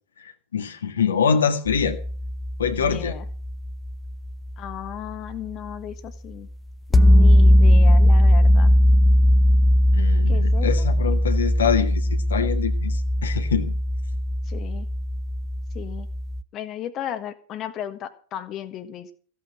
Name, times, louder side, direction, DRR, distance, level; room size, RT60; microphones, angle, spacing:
voice 1, 0.2-2.0 2.6-3.2 9.9-13.8, left 6 dB, 65° left, 6 dB, 1.8 m, -24 dB
sound 1, 1.7-4.9 6.9-16.4, left 1 dB, 15° left, 0.8 m, -19 dB
voice 2, 2.7-3.2 4.6-6.5 6.9-8.7 10.3-10.9 14.4-14.9 15.7-16.1 16.5-19.1, left 11 dB, 35° left, 9 dB, 1.6 m, -35 dB
15.5 x 9.1 x 6.5 m, 0.42 s
figure-of-eight pair, 90°, 0 cm